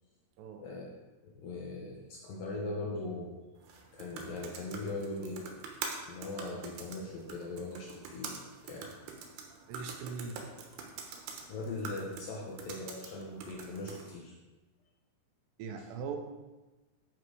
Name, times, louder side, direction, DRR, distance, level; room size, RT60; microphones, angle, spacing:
voice 1, 1.2-3.4 3.9-5.5 6.1-8.4 8.6-8.9 11.5-14.3, left 2 dB, 75° left, -2 dB, 2.1 m, -40 dB
sound 1, 3.6-14.1, right 5 dB, 70° right, 2.6 m, -45 dB
voice 2, 9.5-10.4 15.6-16.2, right 5 dB, 90° right, 4 dB, 2.9 m, -40 dB
10.5 x 4.4 x 4.8 m, 1.1 s
omnidirectional pair, 5.0 m